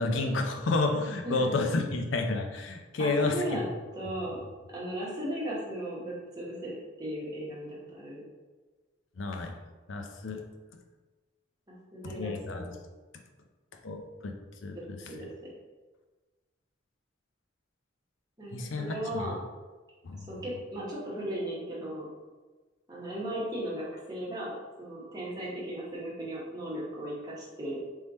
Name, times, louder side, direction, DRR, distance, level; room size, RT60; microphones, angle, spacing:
voice 1, 0.0-3.6 9.2-9.5 9.9-10.4 12.0-12.7 13.8-14.3 14.6-15.3 18.5-19.3 20.0-20.3, left 3 dB, 80° left, 4 dB, 0.6 m, -30 dB
voice 2, 1.2-1.6 3.0-3.7 3.9-4.4 4.7-8.2 11.7-12.7 15.1-15.3 18.4-19.4 20.3-22.1 22.9-27.8, right 1 dB, 20° right, -6 dB, 1.2 m, -36 dB
3.6 x 3.2 x 4.1 m, 1.3 s
head